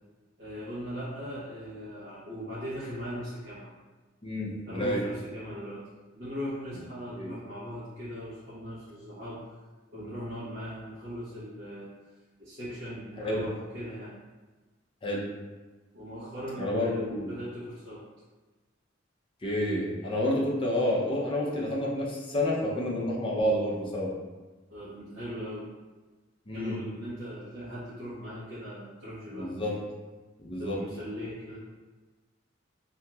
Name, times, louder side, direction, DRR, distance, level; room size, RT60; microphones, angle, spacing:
voice 1, 0.4-3.7 4.7-5.9 6.1-9.6 9.9-11.9 12.4-14.1 15.9-18.0 24.7-25.7 26.5-29.5 30.6-31.6, equal, 55° right, -14 dB, 0.9 m, -39 dB
voice 2, 4.2-5.0 7.1-7.3 13.2-13.5 15.0-15.3 16.6-17.3 19.4-24.1 26.5-26.8 29.3-29.8 30.4-30.8, left 1 dB, 25° left, -4 dB, 0.5 m, -29 dB
2.9 x 2.7 x 2.3 m, 1.3 s
head